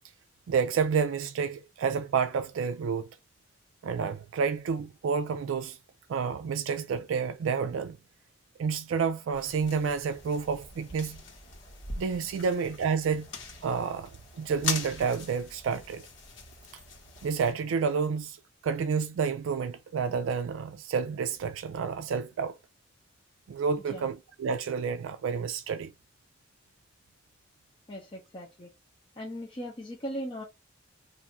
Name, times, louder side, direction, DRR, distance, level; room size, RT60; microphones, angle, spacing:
voice 1, 0.5-3.1 3.8-5.8 6.1-8.0 8.6-11.2 11.9-13.3 13.6-14.1 14.4-16.0 17.2-18.4 18.6-22.5 23.5-25.9, right 6 dB, 85° right, 0.3 m, -29 dB
sound 1, 9.3-17.5, left 4 dB, 70° left, 1.3 m, -41 dB
voice 2, 27.9-28.7 29.2-30.4, equal, 25° left, 0.6 m, -39 dB
2.6 x 2.4 x 4.1 m
head